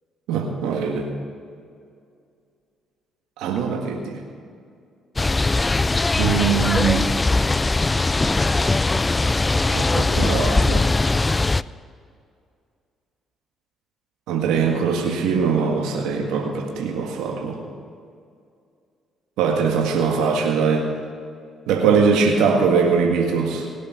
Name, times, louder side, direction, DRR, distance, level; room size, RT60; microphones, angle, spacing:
voice 1, 0.3-1.1 3.4-4.2 6.2-7.1 9.7-10.9 14.3-17.6 19.4-20.9 21.7-23.7, right 5 dB, 85° right, 1 dB, 1.7 m, -21 dB
sound 1, 5.2-11.6, left 3 dB, 20° left, 0.3 m, -20 dB
20.0 x 8.4 x 5.9 m, 2.3 s
supercardioid pair, 70°, 0 cm